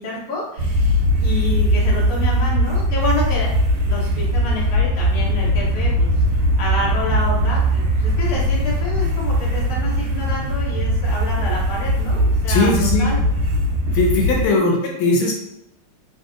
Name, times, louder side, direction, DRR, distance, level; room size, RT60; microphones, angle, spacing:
voice 1, 0.0-3.5 3.8-12.7 13.0-13.2 14.3-14.7, left 2 dB, 55° left, -5 dB, 1.1 m, -28 dB
sound 1, 0.6-14.5, equal, 75° right, 1.3 m, -20 dB
voice 2, 12.5-13.1 13.9-15.3, left 3 dB, 85° left, -1 dB, 1.5 m, -19 dB
3.2 x 2.6 x 2.5 m, 0.82 s
omnidirectional pair, 2.3 m